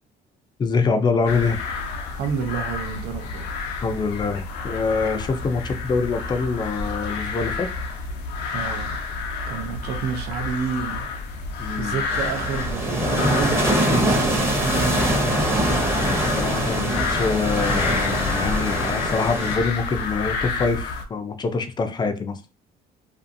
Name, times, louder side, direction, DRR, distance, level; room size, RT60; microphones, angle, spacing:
voice 1, 0.6-1.6 3.8-7.7 11.6-12.1 16.1-22.4, left 4 dB, 25° left, 0.4 m, -25 dB
sound 1, 1.3-21.0, left 4 dB, 80° left, 0.5 m, -29 dB
voice 2, 2.2-3.7 8.5-9.0 9.4-11.1 11.8-15.4 16.8-17.2, right 6 dB, 75° right, 0.5 m, -30 dB
sound 2, 12.1-19.6, right 1 dB, 15° right, 0.7 m, -23 dB
2.6 x 2.4 x 2.5 m
cardioid pair, 110°, 17 cm